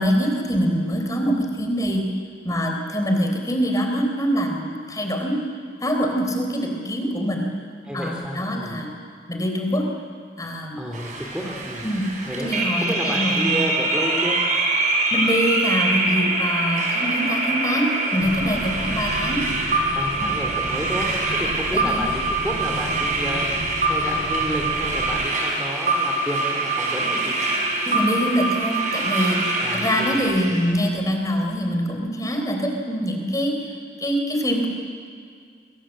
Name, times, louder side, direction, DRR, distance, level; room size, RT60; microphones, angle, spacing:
voice 1, 0.0-2.0 2.4-5.4 5.8-7.4 7.9-8.9 9.3-9.9 10.4-10.8 11.8-12.0 12.4-13.6 15.1-19.4 21.7-22.1 27.8-33.7 34.0-34.7, equal, 20° left, 3 dB, 4.0 m, -24 dB
voice 2, 7.9-8.8 10.8-11.9 12.2-12.5 12.8-14.4 19.9-21.1 21.3-23.4 23.9-27.4 29.6-30.2 30.4-30.5, equal, 5° right, 0 dB, 3.0 m, -31 dB
sound 1, 10.9-30.7, right 2 dB, 45° right, 5.4 m, -24 dB
sound 2, 18.2-25.3, equal, 85° right, 2.5 m, -34 dB
28.0 x 23.5 x 7.6 m, 2.1 s
head